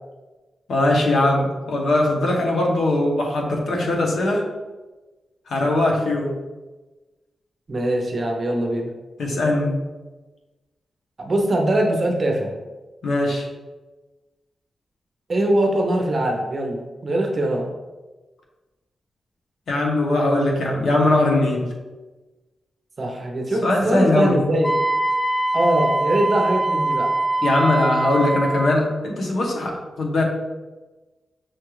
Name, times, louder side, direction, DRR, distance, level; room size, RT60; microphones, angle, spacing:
voice 1, 0.7-4.4 5.5-6.4 9.2-9.8 13.0-13.5 19.7-21.7 23.6-24.4 27.4-30.2, left 2 dB, 75° left, 0 dB, 0.9 m, -20 dB
voice 2, 7.7-8.9 11.2-12.5 15.3-17.7 23.0-24.7 25.5-27.1, right 1 dB, 35° right, 1 dB, 0.6 m, -22 dB
Wind instrument woodwind instrument, 24.6-28.8, right 2 dB, 5° left, 0.3 m, -23 dB
6.1 x 2.4 x 3.1 m, 1.2 s
wide cardioid pair, 145°, 0 cm